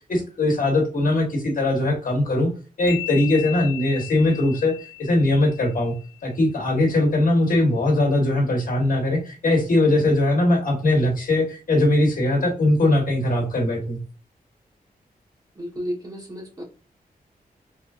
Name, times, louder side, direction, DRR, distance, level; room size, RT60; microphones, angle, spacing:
voice 1, 0.1-2.5 2.8-4.7 5.0-5.9 6.2-14.0, left 1 dB, 65° left, 1 dB, 1.2 m, -20 dB
sound 1, 2.9-6.4, left 17 dB, 40° left, 0.9 m, -37 dB
voice 2, 9.8-10.1 15.6-16.6, equal, 25° right, 0 dB, 1.1 m, -33 dB
3.8 x 3.2 x 2.4 m, 0.37 s
wide cardioid pair, 180°, 16 cm